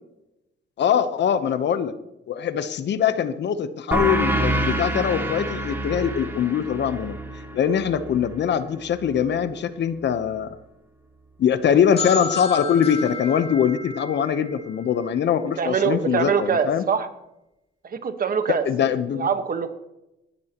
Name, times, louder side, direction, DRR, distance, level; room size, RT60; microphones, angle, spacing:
voice 1, 0.8-1.9 2.3-7.2 7.5-10.5 11.4-16.8 18.5-19.3, left 8 dB, 60° left, 12 dB, 1.0 m, -22 dB
sound 1, 3.9-9.1, right 1 dB, 10° right, 2.5 m, -27 dB
sound 2, 12.0-15.6, left 5 dB, 30° left, 3.1 m, -32 dB
voice 2, 15.6-17.1 17.8-18.7 19.1-19.7, right 6 dB, 45° right, 8 dB, 1.5 m, -23 dB
18.5 x 11.5 x 3.1 m, 0.90 s
cardioid pair, 90°, 20 cm